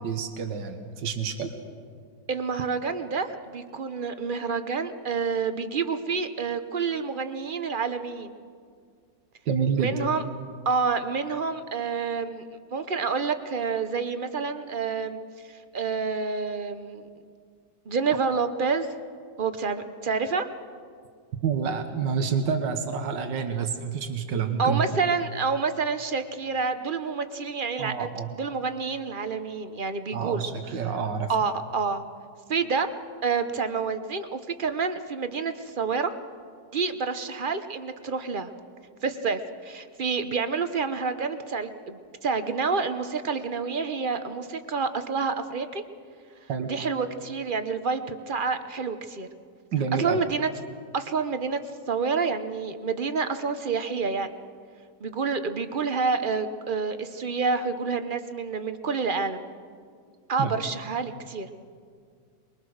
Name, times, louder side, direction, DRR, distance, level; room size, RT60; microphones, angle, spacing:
voice 1, 0.0-1.5 9.5-9.9 21.4-24.8 27.8-28.3 30.1-31.3 46.5-46.7 49.7-50.3 60.4-60.5, right 6 dB, 85° right, 7 dB, 2.0 m, -28 dB
voice 2, 2.3-8.3 9.8-10.2 10.6-12.4 12.7-15.2 15.5-17.0 17.9-18.9 19.4-20.5 24.6-30.4 31.3-32.0 32.5-32.9 33.2-36.1 36.7-38.5 39.0-45.8 46.6-49.3 50.0-50.5 50.9-51.6 51.9-54.3 55.0-59.4 60.3-61.5, right 5 dB, 40° right, 10 dB, 0.8 m, -28 dB
23.5 x 22.0 x 6.4 m, 2.1 s
omnidirectional pair, 1.9 m